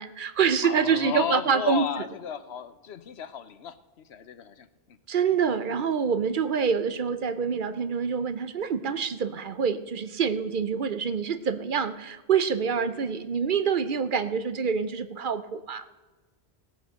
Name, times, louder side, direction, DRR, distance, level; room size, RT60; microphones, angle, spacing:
voice 1, 0.0-1.9 5.1-15.9, right 6 dB, 55° right, 12 dB, 0.8 m, -26 dB
voice 2, 0.6-5.0, left 8 dB, 85° left, 13 dB, 1.0 m, -34 dB
17.5 x 8.3 x 6.4 m, 1.3 s
omnidirectional pair, 1.1 m